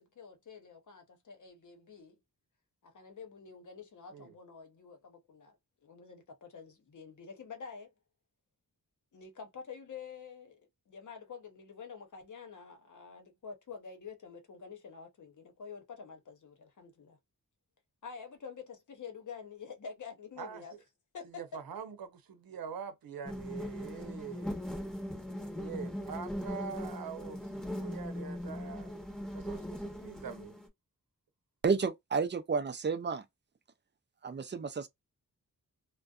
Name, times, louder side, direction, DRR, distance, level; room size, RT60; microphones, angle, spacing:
voice 1, 0.0-2.2 2.8-5.6 5.8-7.9 9.1-17.2 18.0-20.8 21.1-21.3, left 6 dB, 60° left, 0.9 m, -48 dB
voice 2, 20.4-20.8 21.3-24.6 25.5-28.9 29.3-30.6, right 7 dB, 90° right, 0.7 m, -44 dB
sound 1, 23.3-30.7, left 1 dB, ahead, 0.9 m, -39 dB
voice 3, 31.6-33.2 34.2-34.9, right 5 dB, 35° right, 0.4 m, -31 dB
2.5 x 2.2 x 2.3 m
wide cardioid pair, 105°, 34 cm